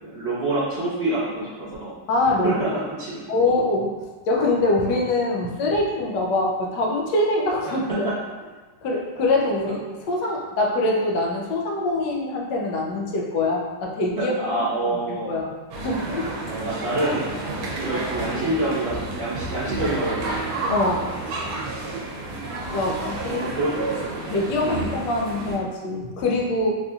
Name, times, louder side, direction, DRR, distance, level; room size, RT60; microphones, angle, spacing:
voice 1, 0.0-1.9 2.4-2.7 3.0-3.2 7.6-7.7 8.0-8.1 9.6-9.7 14.2-15.3 16.4-17.3 17.6-20.3 21.8-21.9 23.3-23.9 24.6-24.9, right 2 dB, 45° right, -15 dB, 1.6 m, -27 dB
voice 2, 2.1-2.6 3.3-3.9 4.3-7.8 8.8-14.3 15.2-16.3 20.7-21.1 22.7-23.4 24.3-26.8, left 2 dB, 70° left, -1 dB, 1.2 m, -24 dB
sound 1, 15.7-25.6, right 2 dB, 70° right, 1.2 m, -30 dB
4.1 x 2.6 x 2.3 m, 1.3 s
omnidirectional pair, 2.0 m